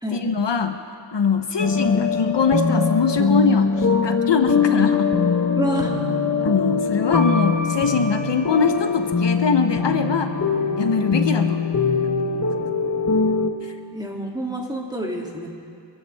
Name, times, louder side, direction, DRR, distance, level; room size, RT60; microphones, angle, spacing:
voice 1, 0.1-0.8 1.1-5.2 6.4-10.3 10.8-11.7 13.6-13.8, left 5 dB, 70° left, 7 dB, 0.9 m, -22 dB
sound 1, 1.6-13.5, left 4 dB, 40° left, 1.2 m, -22 dB
voice 2, 5.6-5.9 13.9-15.5, right 1 dB, 10° right, -2 dB, 2.6 m, -28 dB
25.5 x 15.0 x 3.5 m, 2.4 s
wide cardioid pair, 65°, 44 cm